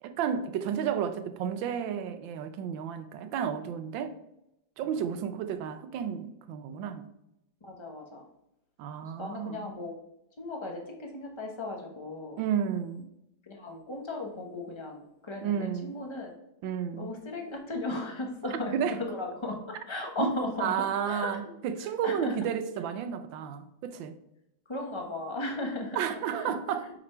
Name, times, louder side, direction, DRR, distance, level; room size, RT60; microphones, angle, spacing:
voice 1, 0.0-4.2 4.8-7.1 8.8-9.7 12.4-13.1 15.4-15.9 16.6-17.1 18.7-19.0 20.2-20.3 20.6-24.2 26.0-26.8, right 8 dB, 75° right, 1.3 m, -32 dB
voice 2, 7.6-8.2 9.0-9.9 10.4-12.4 13.4-16.3 16.9-20.7 21.0-21.4 22.0-22.3 24.7-26.0 26.3-26.5 26.8-26.9, left 2 dB, 35° left, 0.4 m, -36 dB
5.8 x 5.0 x 4.3 m
omnidirectional pair, 2.1 m